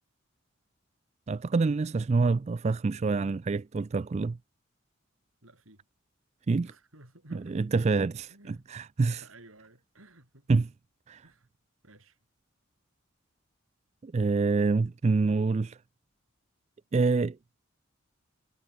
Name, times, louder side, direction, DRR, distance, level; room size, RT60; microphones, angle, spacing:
voice 1, 1.3-4.4 6.5-6.7 7.3-9.2 10.5-10.7 11.1-11.2 14.0-15.8 16.9-17.4, right 4 dB, 30° right, 0.3 m, -26 dB
voice 2, 5.4-5.9 6.6-7.6 7.9-8.7 9.2-10.5 11.2-11.5 11.8-12.2, right 2 dB, 90° right, 6.5 m, -55 dB
head